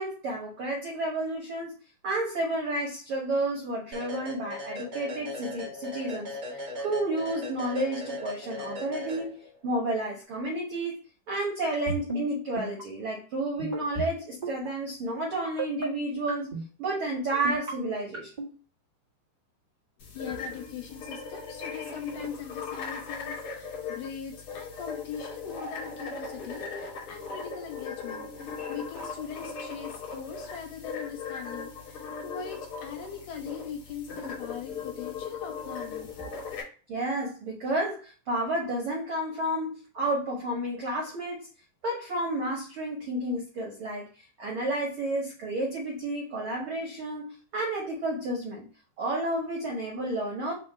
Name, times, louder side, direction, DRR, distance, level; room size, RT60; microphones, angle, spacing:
voice 1, 0.0-1.7 2.0-11.0 11.3-18.3 36.9-41.5 41.8-44.1 44.4-48.7 49.0-50.5, right 1 dB, 70° right, -2 dB, 1.2 m, -31 dB
sound 1, 3.9-9.7, left 1 dB, 90° right, 0.8 m, -38 dB
sound 2, 11.7-12.2 12.6-12.8 13.6-14.1 14.4-14.7 15.4-15.9 16.3-16.6 17.3-17.7 18.1-18.5, right 2 dB, 35° right, 0.7 m, -32 dB
sound 3, 20.0-36.6, left 5 dB, 55° left, 1.6 m, -38 dB
voice 2, 20.1-36.4, left 7 dB, 75° left, 3 dB, 2.3 m, -41 dB
5.1 x 2.1 x 4.5 m, 0.37 s
omnidirectional pair, 3.8 m